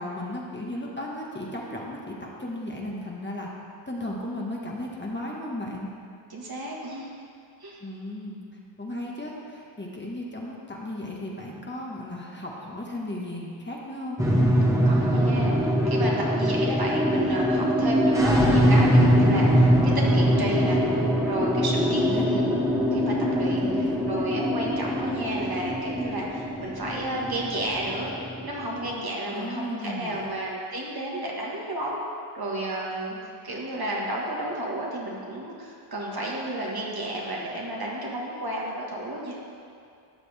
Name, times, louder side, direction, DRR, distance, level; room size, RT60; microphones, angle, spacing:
voice 1, 0.0-3.5 3.9-5.9 7.8-8.4 8.8-14.2 21.8-22.5 23.6-24.2 29.3-30.3, left 1 dB, 20° left, -3 dB, 1.7 m, -35 dB
voice 2, 6.3-7.1 7.6-7.8 14.8-20.8 21.3-22.4 22.9-28.1 28.4-32.0 32.3-33.2 33.4-39.4, right 1 dB, 50° right, -3 dB, 2.0 m, -32 dB
sound 1, 14.2-28.8, equal, 5° right, 1.5 m, -22 dB
12.5 x 6.9 x 3.6 m, 2.4 s
cardioid pair, 55°, 48 cm